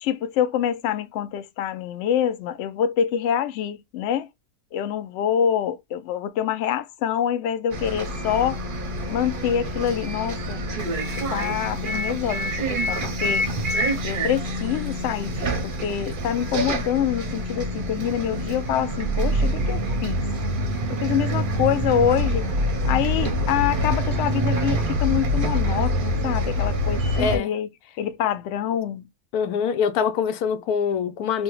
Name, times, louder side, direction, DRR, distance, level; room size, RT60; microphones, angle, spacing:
voice 1, 0.0-4.3 4.7-8.6 9.1-10.7 11.3-13.5 14.0-20.2 20.9-22.5 22.8-27.7 28.0-29.1, left 9 dB, 65° left, 0.7 m, -26 dB
Bus, 7.7-27.4, equal, 50° right, 0.6 m, -26 dB
voice 2, 27.2-27.5 29.3-31.4, left 6 dB, 85° left, 1.1 m, -24 dB
3.3 x 2.2 x 2.9 m
omnidirectional pair, 1.6 m